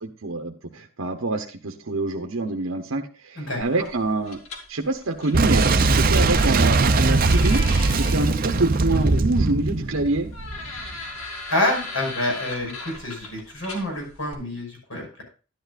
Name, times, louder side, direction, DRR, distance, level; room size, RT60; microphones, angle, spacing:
voice 1, 0.2-4.4 4.7-7.6 7.9-10.3, right 2 dB, 70° right, 3 dB, 0.9 m, -26 dB
sound 1, 3.6-14.3, left 2 dB, 90° left, 2.2 m, -39 dB
Boom, 5.3-10.9, right 3 dB, 40° right, 0.6 m, -20 dB
voice 2, 11.5-15.2, left 1 dB, 70° left, 0 dB, 5.9 m, -27 dB
12.0 x 10.5 x 2.5 m, 0.35 s
head